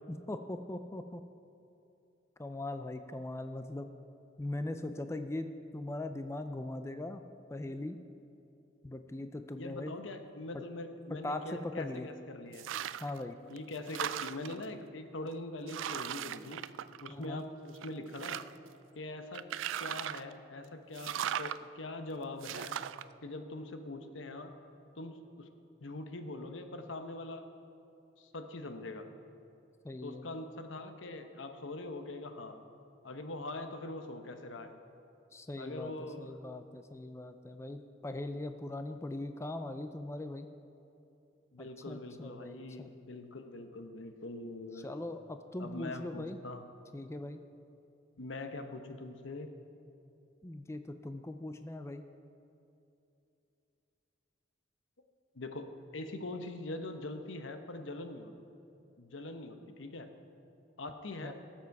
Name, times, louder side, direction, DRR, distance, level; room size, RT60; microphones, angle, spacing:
voice 1, 0.1-1.2 2.4-3.9 4.4-7.2 7.5-8.0 8.8-9.9 10.5-10.6 11.1-12.1 13.0-13.4 17.1-17.4 29.8-30.3 35.3-35.9 36.2-40.5 41.6-42.9 44.8-46.4 46.9-47.4 50.4-52.1 61.2-61.3, left 1 dB, 15° left, 8 dB, 0.4 m, -40 dB
voice 2, 9.5-12.7 13.5-16.6 17.0-18.4 19.0-19.5 19.8-22.8 23.2-24.5 25.0-25.5 25.8-27.5 28.2-29.1 30.0-32.6 33.0-34.7 35.6-36.4 41.5-44.9 45.6-46.6 48.2-49.5 55.3-58.3 59.0-60.1 60.8-61.3, left 2 dB, 85° left, 7 dB, 0.9 m, -43 dB
sound 1, 12.5-13.2 13.6-14.6 15.3-15.4 15.7-17.4 17.8-18.7 19.3-20.3 20.9-21.6 22.4-23.0, right 10 dB, 85° right, 0.3 m, -38 dB
18.5 x 7.5 x 4.7 m, 2.7 s
head